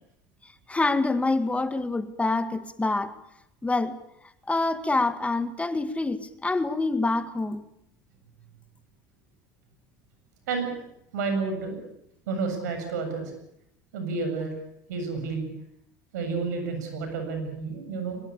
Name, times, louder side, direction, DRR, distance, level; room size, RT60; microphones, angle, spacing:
voice 1, 0.7-3.1 3.6-4.0 4.5-7.7, left 3 dB, 15° left, 1.9 m, -26 dB
voice 2, 11.1-11.8 12.3-13.3 13.9-14.5 14.9-15.5 16.1-18.2, right 4 dB, 85° right, 7.5 m, -30 dB
23.0 x 21.0 x 8.7 m
hypercardioid pair, 85°, 9 cm